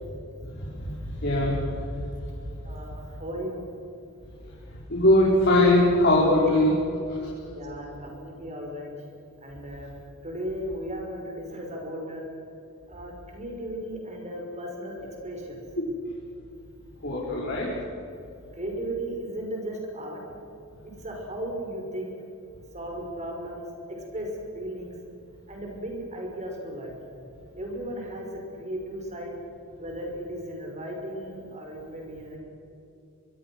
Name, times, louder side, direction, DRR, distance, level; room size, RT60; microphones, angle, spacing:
voice 1, 1.2-1.6 4.9-6.7 17.0-17.7, left 1 dB, 50° left, -5 dB, 5.0 m, -20 dB
voice 2, 2.6-3.6 7.5-8.9 9.4-9.9 10.2-12.3 12.9-15.6 17.3-17.7 18.5-20.2 20.8-22.1 22.7-24.9 25.5-26.9 27.5-29.4 29.8-32.4, right 1 dB, 30° right, 1 dB, 5.6 m, -36 dB
25.5 x 23.5 x 6.3 m, 2.7 s
head